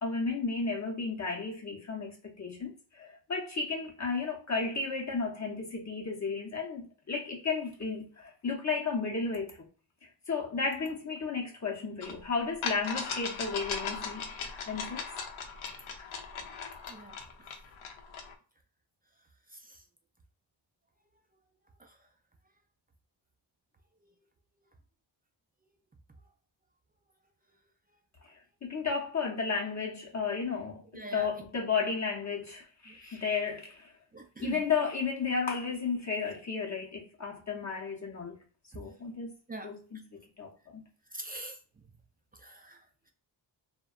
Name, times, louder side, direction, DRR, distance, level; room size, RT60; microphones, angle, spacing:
voice 1, 0.0-9.7 10.0-14.3 14.7-15.0 28.2-33.9 34.4-38.4 38.7-39.3 39.6-40.8, left 4 dB, 35° left, 0.6 m, -33 dB
sound 1, 12.0-12.1 12.6-18.3, left 5 dB, 85° left, 0.6 m, -38 dB
voice 2, 30.9-31.3 33.1-33.2 34.1-34.6 39.5-39.7 41.1-41.6 42.4-42.8, right 3 dB, 20° right, 0.3 m, -42 dB
2.7 x 2.1 x 2.3 m
cardioid pair, 75°, 47 cm